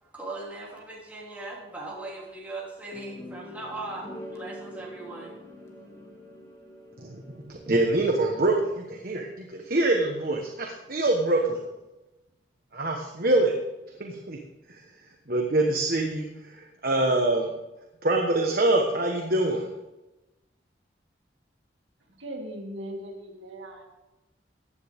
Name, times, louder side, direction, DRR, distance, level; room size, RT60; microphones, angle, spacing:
voice 1, 0.0-4.0 4.3-5.3, right 2 dB, 10° right, -5 dB, 3.1 m, -39 dB
sound 1, 2.9-8.0, equal, 15° left, 1.7 m, -44 dB
voice 2, 7.0-11.6 12.7-13.5 14.0-14.4 14.7-14.8 15.3-17.5 18.0-19.7, right 2 dB, 50° right, 1 dB, 1.2 m, -25 dB
voice 3, 22.2-23.8, right 1 dB, 90° right, 1 dB, 2.4 m, -38 dB
15.5 x 9.7 x 3.6 m, 1.0 s
head